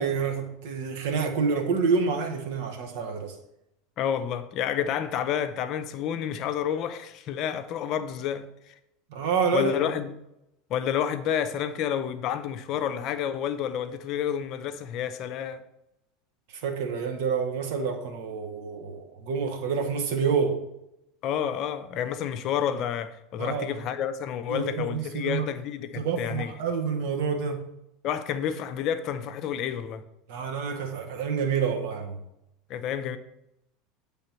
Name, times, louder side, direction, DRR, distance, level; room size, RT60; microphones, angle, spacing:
voice 1, 0.0-3.4 9.1-9.7 16.5-20.6 23.4-23.8 24.5-25.5 26.0-27.7 30.3-32.2, right 5 dB, 65° right, 1.0 m, -28 dB
voice 2, 4.0-8.7 9.5-10.1 10.7-15.6 21.2-26.5 28.0-30.0 32.7-33.2, left 9 dB, 50° left, 0.5 m, -29 dB
7.7 x 3.5 x 4.4 m
figure-of-eight pair, 80°, 0 cm